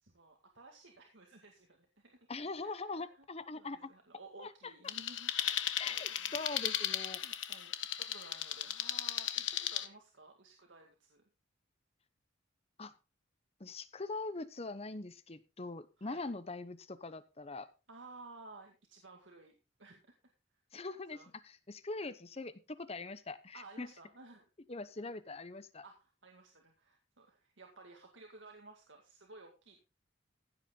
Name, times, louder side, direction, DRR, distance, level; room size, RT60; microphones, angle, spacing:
voice 1, 0.0-2.2 2.6-3.3 3.5-6.4 7.1-11.2 16.0-16.2 17.9-20.1 21.1-21.3 23.5-24.5 25.8-29.8, right 3 dB, 70° right, 2 dB, 2.1 m, -56 dB
voice 2, 2.3-3.9 4.4-4.5 5.8-7.2 12.8-12.9 13.6-17.7 20.7-21.2 21.4-23.9 24.7-25.8, left 3 dB, 30° left, 14 dB, 0.9 m, -42 dB
sound 1, 4.9-9.8, left 11 dB, 75° left, 1.3 m, -36 dB
16.0 x 8.2 x 3.8 m, 0.29 s
head